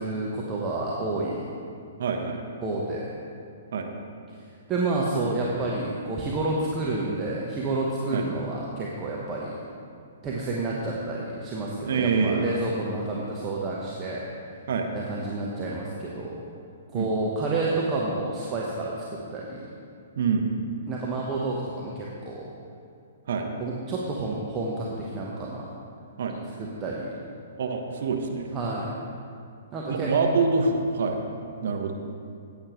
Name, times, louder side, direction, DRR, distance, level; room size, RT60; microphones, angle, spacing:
voice 1, 0.0-1.4 2.6-3.1 4.7-9.6 10.2-14.2 14.9-16.4 16.9-19.7 20.9-22.5 23.6-25.7 26.6-27.1 28.5-29.0 29.7-30.1, right 2 dB, 25° right, -4 dB, 1.2 m, -29 dB
voice 2, 2.0-2.4 3.7-3.9 8.1-8.3 11.9-12.5 14.7-14.9 16.9-17.1 20.2-20.5 23.3-23.5 26.2-26.4 27.6-28.5 29.9-31.2 31.6-31.9, right 4 dB, 55° right, 3 dB, 1.1 m, -25 dB
14.5 x 8.8 x 3.2 m, 2.4 s
figure-of-eight pair, 120°, 0 cm